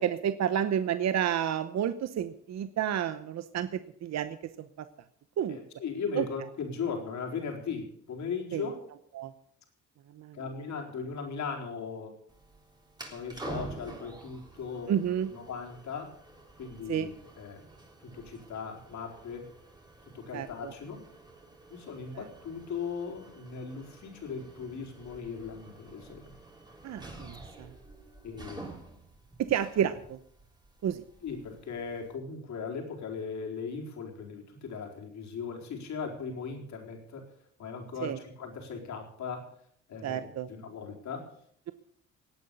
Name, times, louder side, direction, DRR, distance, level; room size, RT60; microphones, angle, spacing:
voice 1, 0.0-4.7 5.4-5.6 6.2-6.3 8.5-8.7 9.1-9.3 10.1-10.4 14.9-15.3 16.9-17.1 20.3-20.7 22.1-22.2 26.8-27.7 29.4-30.2 30.8-31.0 38.0-38.2 40.0-40.5, right 9 dB, 60° right, 11 dB, 0.9 m, -30 dB
voice 2, 5.5-8.8 10.3-12.1 13.1-14.9 15.3-16.1 16.6-17.6 18.0-19.5 20.0-21.0 21.7-26.4 28.2-28.6 31.2-37.3 37.6-39.5 39.9-41.3, left 5 dB, 65° left, 1 dB, 4.4 m, -38 dB
sound 1, 12.3-32.1, right 2 dB, 15° right, 3.6 m, -49 dB
18.0 x 8.8 x 7.0 m, 0.66 s
cardioid pair, 90°, 30 cm